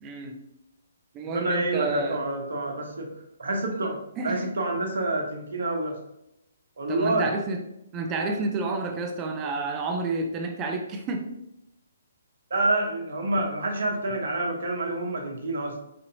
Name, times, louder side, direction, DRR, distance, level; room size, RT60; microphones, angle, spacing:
voice 1, 0.0-0.4 1.1-2.2 4.2-4.5 6.9-7.6 7.9-11.3, right 3 dB, 25° right, 3 dB, 0.5 m, -29 dB
voice 2, 1.2-3.1 3.4-6.0 6.8-7.3 12.5-15.8, right 2 dB, 70° right, 2 dB, 0.9 m, -28 dB
4.4 x 2.7 x 2.6 m, 0.81 s
hypercardioid pair, 135°, 0 cm